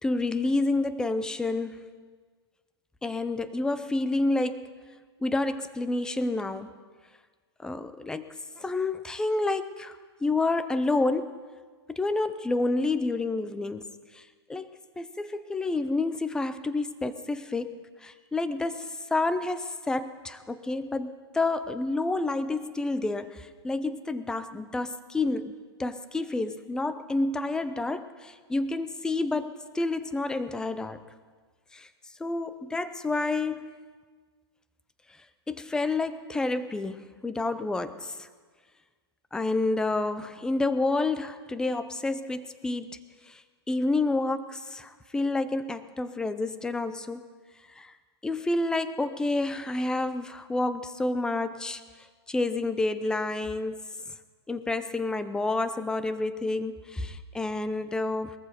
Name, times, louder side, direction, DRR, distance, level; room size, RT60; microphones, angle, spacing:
voice 1, 0.0-1.9 3.0-4.7 5.2-6.7 7.6-11.4 11.9-13.9 14.1-14.2 14.5-14.7 15.0-17.8 18.0-25.5 25.8-31.0 31.7-31.9 32.2-33.7 35.5-38.3 39.3-43.0 43.3-43.4 43.7-47.2 47.8-47.9 48.2-51.8 52.3-53.9 54.5-58.3, left 2 dB, 5° left, 12 dB, 0.6 m, -29 dB
20.5 x 14.5 x 4.5 m, 1.5 s
hypercardioid pair, 135°, 14 cm